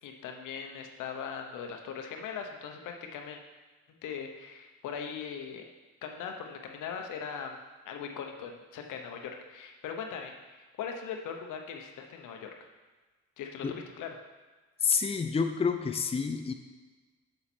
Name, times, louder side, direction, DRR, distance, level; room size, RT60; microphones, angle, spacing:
voice 1, 0.0-3.4 4.0-5.6 6.0-7.6 7.8-12.5 13.4-14.2, left 6 dB, 85° left, 4 dB, 1.0 m, -40 dB
voice 2, 14.8-16.5, left 5 dB, 20° left, 6 dB, 0.6 m, -28 dB
7.0 x 6.7 x 4.4 m, 1.3 s
cardioid pair, 90°, 30 cm